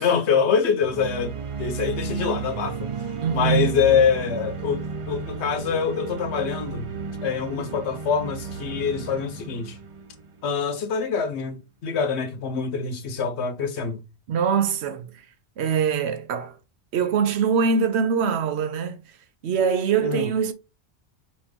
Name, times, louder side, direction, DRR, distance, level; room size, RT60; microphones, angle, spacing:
voice 1, 0.0-2.9 3.3-6.9 7.2-9.8 10.4-14.0 20.0-20.3, left 6 dB, 75° left, 1.1 m, -25 dB
sound 1, 0.8-10.9, right 5 dB, 55° right, 0.3 m, -33 dB
voice 2, 3.2-3.7 14.3-15.2 15.6-16.6 16.9-19.0 19.4-20.5, right 6 dB, 70° right, 0.9 m, -23 dB
4.2 x 2.9 x 3.6 m
omnidirectional pair, 1.2 m